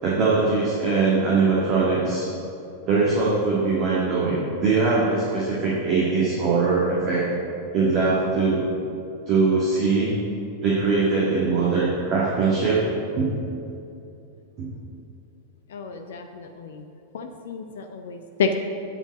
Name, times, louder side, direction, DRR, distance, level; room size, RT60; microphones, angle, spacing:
voice 1, 0.0-2.3 2.9-7.3 7.7-8.6 9.3-10.1 10.6-12.8 13.1-13.3 14.6-14.7, right 4 dB, 35° right, -7 dB, 1.9 m, -21 dB
voice 2, 15.7-16.8 17.1-18.5, left 5 dB, 60° left, 5 dB, 0.6 m, -30 dB
9.0 x 5.1 x 7.3 m, 2.7 s
figure-of-eight pair, 90°, 0 cm